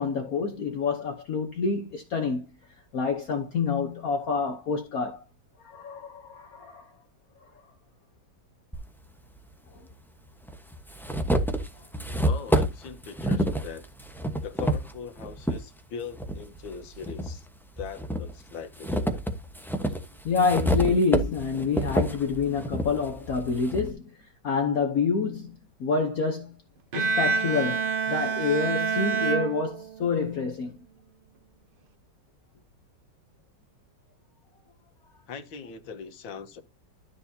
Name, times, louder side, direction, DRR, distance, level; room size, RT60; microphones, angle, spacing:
voice 1, 0.0-2.5 2.9-5.2 5.6-6.9 20.2-25.5 25.8-26.5 26.9-30.8, left 5 dB, 55° left, 1.3 m, -27 dB
sound 1, 8.7-8.8 9.9-10.0 10.5-15.6 16.1-17.3 17.8-23.9, right 1 dB, ahead, 0.7 m, -28 dB
voice 2, 12.2-13.9 14.4-17.5 17.8-19.2 23.3-23.4 35.3-36.6, left 6 dB, 80° left, 1.9 m, -40 dB
Bowed string instrument, 26.9-30.3, right 5 dB, 45° right, 0.7 m, -27 dB
12.5 x 6.9 x 2.8 m
omnidirectional pair, 2.1 m